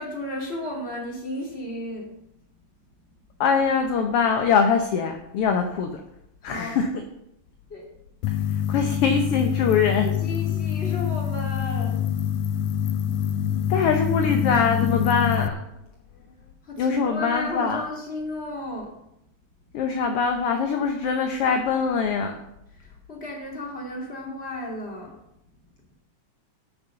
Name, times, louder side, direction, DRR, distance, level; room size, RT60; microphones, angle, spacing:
voice 1, 0.0-2.1 6.4-6.8 7.7-7.9 10.0-12.1 16.6-19.0 22.7-25.2, left 1 dB, 20° left, -1 dB, 2.7 m, -34 dB
voice 2, 3.4-6.0 6.4-7.0 8.7-10.1 13.7-15.5 16.8-17.9 19.7-22.4, left 6 dB, 65° left, 5 dB, 1.6 m, -23 dB
sound 1, 8.2-15.5, left 9 dB, 90° left, 2.1 m, -25 dB
13.0 x 6.6 x 6.7 m, 0.81 s
omnidirectional pair, 3.5 m